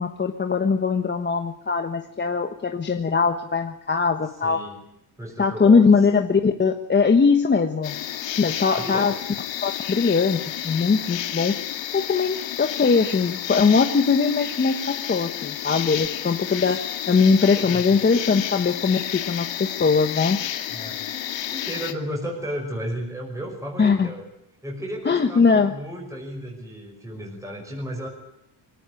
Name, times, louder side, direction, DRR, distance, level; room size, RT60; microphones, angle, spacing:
voice 1, 0.0-4.6 5.4-7.9 8.3-9.1 9.6-11.6 11.9-20.4 23.8-24.1 25.1-25.7, left 5 dB, 25° left, 6 dB, 1.3 m, -21 dB
voice 2, 4.4-4.8 5.2-5.8 8.8-9.3 17.5-17.8 20.7-24.3 24.6-28.1, equal, 5° right, 0 dB, 5.9 m, -34 dB
sound 1, 7.8-21.9, left 11 dB, 70° left, 2.1 m, -31 dB
24.0 x 17.5 x 9.7 m, 0.79 s
cardioid pair, 155°, 46 cm